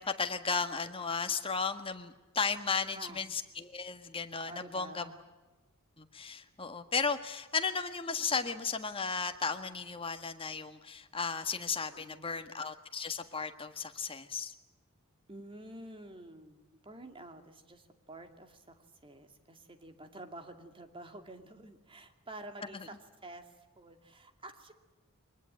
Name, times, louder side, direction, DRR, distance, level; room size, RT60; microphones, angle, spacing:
voice 1, 0.0-5.1 6.0-14.5 22.7-22.9, left 5 dB, 25° left, 8 dB, 1.6 m, -35 dB
voice 2, 4.5-5.2 11.9-12.4 15.3-24.7, right 1 dB, 25° right, 6 dB, 2.4 m, -50 dB
23.5 x 20.5 x 9.0 m, 1.2 s
head